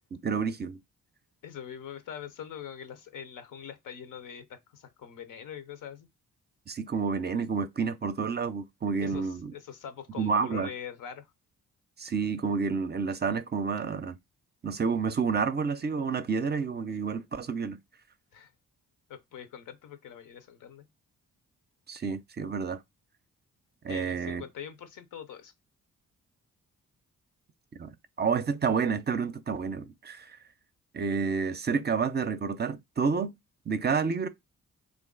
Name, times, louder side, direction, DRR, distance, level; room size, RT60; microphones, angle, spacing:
voice 1, 0.1-0.8 6.7-9.5 10.1-10.7 12.0-14.2 14.6-17.8 21.9-22.8 23.8-24.4 27.8-30.4 30.9-33.4 33.7-34.3, right 5 dB, 35° right, 0.4 m, -29 dB
voice 2, 1.4-6.1 9.0-11.3 18.3-18.5 19.1-20.8 23.9-25.5, left 8 dB, 85° left, 0.7 m, -43 dB
3.1 x 2.5 x 3.7 m
cardioid pair, 75°, 31 cm